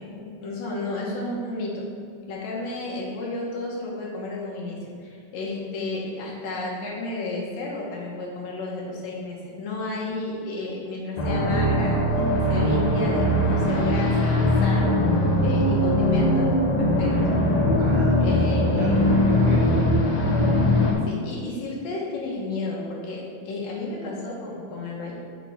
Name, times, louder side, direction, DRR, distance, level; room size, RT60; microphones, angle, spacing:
voice 1, 0.0-1.9 2.3-14.9 15.4-17.1 18.2-19.1 21.1-25.1, left 2 dB, 90° left, -4 dB, 3.0 m, -32 dB
sound 1, 11.2-20.9, left 1 dB, 70° left, 1.8 m, -21 dB
voice 2, 17.8-19.9, right 4 dB, 80° right, -2 dB, 1.5 m, -33 dB
6.3 x 4.2 x 5.8 m, 2.3 s
omnidirectional pair, 3.8 m